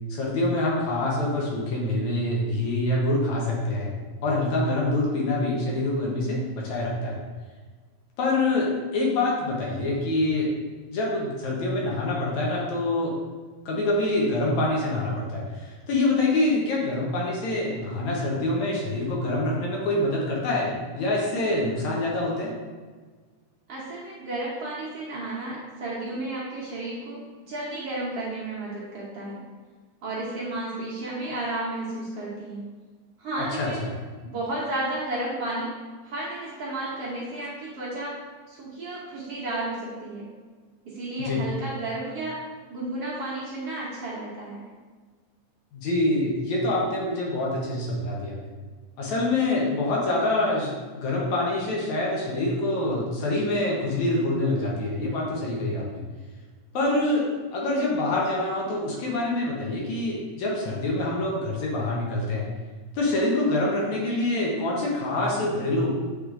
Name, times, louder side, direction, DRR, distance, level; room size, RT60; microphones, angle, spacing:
voice 1, 0.1-3.9 4.2-7.2 8.2-10.5 10.9-13.1 13.7-22.5 33.4-33.9 41.2-41.4 45.7-48.4 49.0-56.0 56.7-62.5 62.9-65.9, left 2 dB, 65° left, -3 dB, 2.2 m, -26 dB
voice 2, 23.7-27.2 27.5-29.4 30.0-32.6 33.2-33.9 34.2-35.7 36.0-38.1 38.5-40.2 40.9-42.4 42.7-44.6, right 2 dB, 60° right, -6 dB, 1.8 m, -32 dB
8.4 x 4.9 x 2.5 m, 1.4 s
omnidirectional pair, 3.8 m